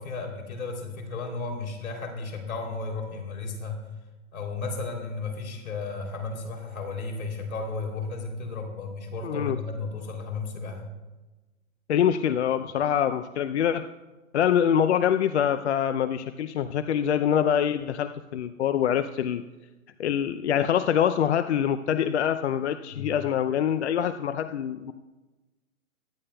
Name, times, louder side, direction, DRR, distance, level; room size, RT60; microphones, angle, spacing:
voice 1, 0.0-3.8 4.3-10.8 22.9-23.1, left 3 dB, 75° left, 3 dB, 3.2 m, -34 dB
voice 2, 9.2-9.6 11.9-13.9 14.3-19.4 20.0-24.9, left 9 dB, 55° left, 10 dB, 0.6 m, -25 dB
23.0 x 10.5 x 2.3 m, 1.1 s
hypercardioid pair, 155°, 42 cm